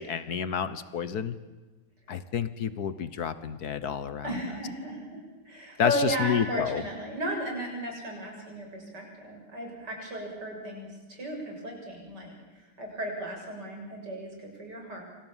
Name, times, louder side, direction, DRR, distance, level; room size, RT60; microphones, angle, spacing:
voice 1, 0.0-1.4 2.1-4.2 5.8-6.8, left 7 dB, 50° left, 14 dB, 1.4 m, -29 dB
voice 2, 4.2-15.0, equal, 50° right, 1 dB, 7.7 m, -35 dB
27.5 x 26.0 x 7.4 m, 1.2 s
omnidirectional pair, 2.4 m